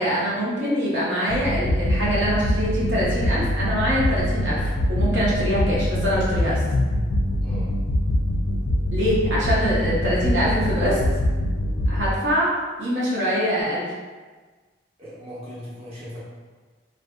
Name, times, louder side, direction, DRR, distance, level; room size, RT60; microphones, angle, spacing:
voice 1, 0.0-6.6 8.9-11.0 11.9-12.5 12.8-13.9, equal, 70° right, -8 dB, 0.8 m, -24 dB
sound 1, 1.3-12.1, left 1 dB, 85° left, 0.3 m, -23 dB
voice 2, 7.4-7.7 9.2-9.3 15.0-16.2, equal, 35° right, -9 dB, 0.8 m, -38 dB
2.6 x 2.6 x 2.2 m, 1.4 s
head